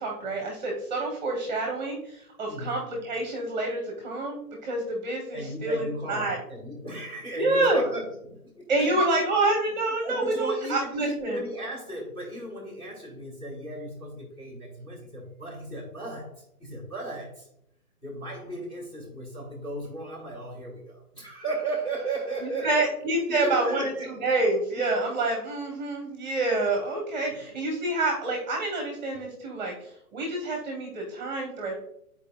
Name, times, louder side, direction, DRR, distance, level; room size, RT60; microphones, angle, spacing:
voice 1, 0.0-6.4 7.4-7.8 8.7-11.4 22.4-23.9 24.2-29.7 30.1-31.7, right 2 dB, 30° right, 1 dB, 1.0 m, -27 dB
voice 2, 5.3-9.0 10.0-17.5 18.0-22.9 23.3-24.2 27.3-27.4, right 2 dB, 15° left, -2 dB, 1.6 m, -35 dB
10.0 x 4.3 x 2.2 m, 0.77 s
hypercardioid pair, 165°, 46 cm